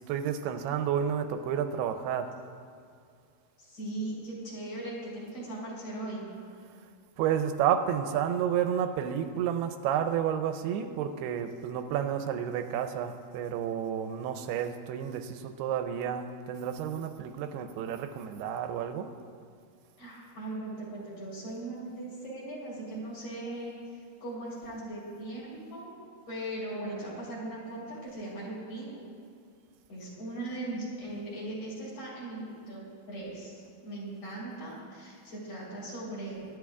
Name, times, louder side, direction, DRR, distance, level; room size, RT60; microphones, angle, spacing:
voice 1, 0.0-2.4 7.2-19.1, right 9 dB, 85° right, 8 dB, 2.6 m, -31 dB
voice 2, 3.6-6.3 20.0-26.0 26.3-29.0 29.9-36.5, right 1 dB, 45° left, -6 dB, 4.8 m, -39 dB
23.5 x 11.5 x 2.4 m, 2.2 s
omnidirectional pair, 4.7 m